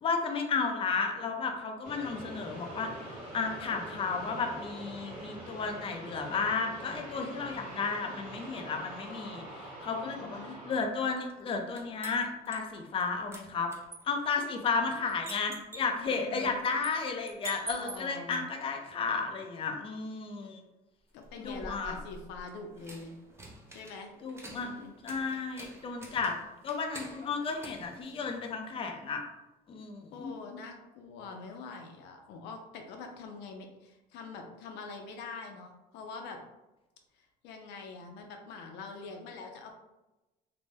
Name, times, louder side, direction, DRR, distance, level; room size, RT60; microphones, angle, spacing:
voice 1, 0.0-2.9 3.3-10.4 10.7-13.7 14.1-20.6 21.4-22.0 24.2-24.7 25.0-26.3 26.6-29.2 29.7-30.3, left 4 dB, 35° left, 3 dB, 0.4 m, -33 dB
sound 1, 1.8-12.1, right 1 dB, 50° right, 1.1 m, -45 dB
voice 2, 10.0-10.6 16.1-16.6 17.7-18.5 21.1-23.1 23.7-24.1 24.5-25.0 30.1-36.4 37.4-39.7, left 4 dB, 90° left, 3 dB, 0.5 m, -44 dB
sound 2, 11.2-13.0 13.3-18.4 21.2-28.7, right 2 dB, 15° right, 0.6 m, -48 dB
2.6 x 2.0 x 3.3 m, 1.0 s
cardioid pair, 110°, 17 cm